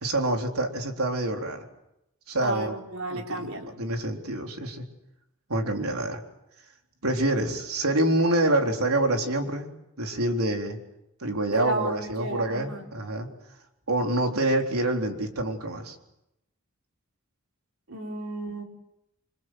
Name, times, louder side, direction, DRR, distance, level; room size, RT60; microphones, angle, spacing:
voice 1, 0.0-1.6 2.3-2.7 3.1-3.5 3.8-4.8 5.5-6.2 7.0-9.7 10.0-10.8 11.2-13.3 13.9-16.0, right 1 dB, 90° right, 3 dB, 3.8 m, -26 dB
voice 2, 2.4-3.8 11.5-12.9 17.9-18.6, right 2 dB, 70° right, 2 dB, 4.5 m, -33 dB
29.0 x 25.0 x 7.7 m, 0.87 s
head